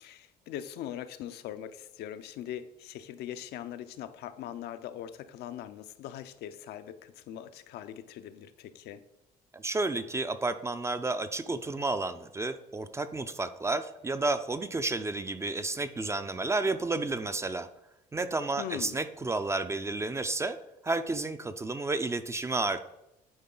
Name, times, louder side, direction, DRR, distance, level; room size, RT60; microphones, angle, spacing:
voice 1, 0.0-9.0 18.6-19.0, left 10 dB, 75° left, 0.5 m, -41 dB
voice 2, 9.5-17.7 18.1-20.6 20.8-22.8, right 3 dB, 15° right, 0.4 m, -31 dB
9.5 x 3.6 x 3.8 m
cardioid pair, 110°, 17 cm